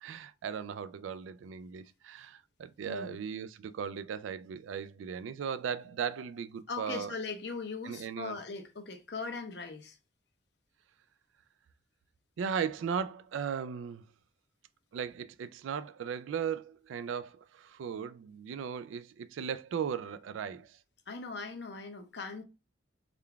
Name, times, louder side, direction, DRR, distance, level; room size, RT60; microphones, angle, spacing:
voice 1, 0.0-7.1 7.8-8.4 12.4-14.0 14.9-20.8, right 7 dB, 85° right, 0.3 m, -37 dB
voice 2, 2.9-3.2 6.7-10.0 21.1-22.4, left 4 dB, 60° left, 0.6 m, -40 dB
3.7 x 2.3 x 3.3 m
head